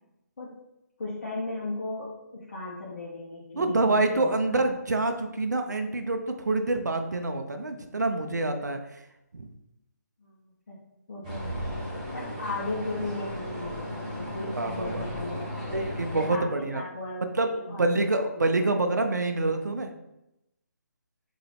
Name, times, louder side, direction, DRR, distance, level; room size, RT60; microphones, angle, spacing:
voice 1, 1.0-4.7 10.2-10.8 11.1-11.7 12.1-16.5 16.7-17.3 17.5-18.4, left 2 dB, 50° left, -7 dB, 1.1 m, -37 dB
voice 2, 3.6-9.0 9.3-9.5 14.5-15.1 15.7-16.8 17.4-19.9, right 2 dB, 75° right, 6 dB, 0.5 m, -27 dB
sound 1, 11.2-16.3, equal, 25° right, 1.1 m, -35 dB
3.6 x 2.9 x 3.4 m, 0.90 s
figure-of-eight pair, 150°, 10 cm